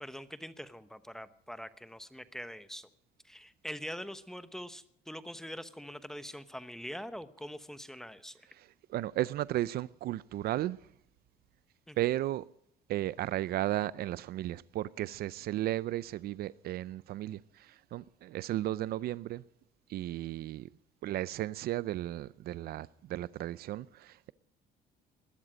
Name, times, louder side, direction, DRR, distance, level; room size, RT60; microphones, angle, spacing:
voice 1, 0.0-2.9 3.2-8.4 11.9-12.0, equal, 5° left, 1.1 m, -43 dB
voice 2, 8.5-10.9 12.0-12.5 12.9-19.4 19.9-20.7 21.0-24.3, right 14 dB, 65° right, 0.5 m, -34 dB
20.5 x 12.5 x 5.1 m
cardioid pair, 110°, 17 cm